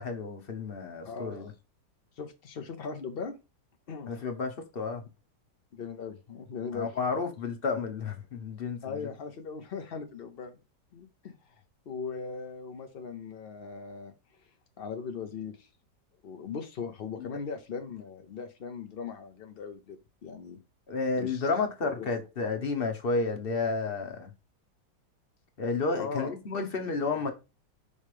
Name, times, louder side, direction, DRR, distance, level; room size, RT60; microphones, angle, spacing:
voice 1, 0.0-1.5 4.1-5.0 6.7-9.1 17.2-17.3 20.9-24.3 25.6-27.3, left 4 dB, 40° left, 1.0 m, -31 dB
voice 2, 1.0-1.5 2.2-3.4 3.9-4.1 5.7-6.9 8.8-10.6 10.9-14.1 14.4-14.5 14.8-15.7 16.2-20.6 21.2-21.5 22.0-22.1 26.0-26.3, left 5 dB, 65° left, 0.5 m, -39 dB
5.4 x 3.6 x 4.9 m
omnidirectional pair, 2.0 m